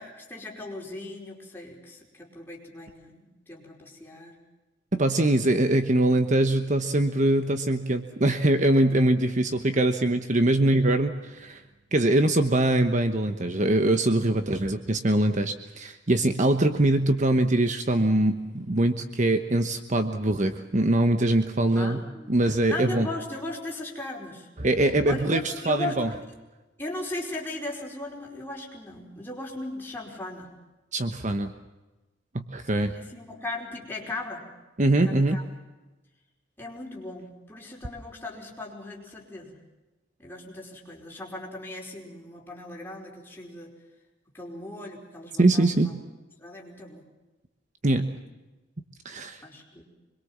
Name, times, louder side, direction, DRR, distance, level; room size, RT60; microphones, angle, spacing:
voice 1, 0.0-4.4 21.7-22.4 22.7-24.5 25.0-26.2 26.8-30.5 32.7-34.4 35.0-35.4 36.6-39.6 40.2-43.7 44.3-45.9 46.4-47.0 49.4-49.8, left 2 dB, 10° left, -2 dB, 4.9 m, -38 dB
voice 2, 4.9-11.6 11.9-22.0 22.3-23.1 24.6-26.1 30.9-31.5 32.3-32.9 34.8-35.4 45.4-45.9 47.8-48.1 49.0-49.4, right 1 dB, 40° right, 8 dB, 1.1 m, -23 dB
25.5 x 22.0 x 7.4 m, 1.1 s
head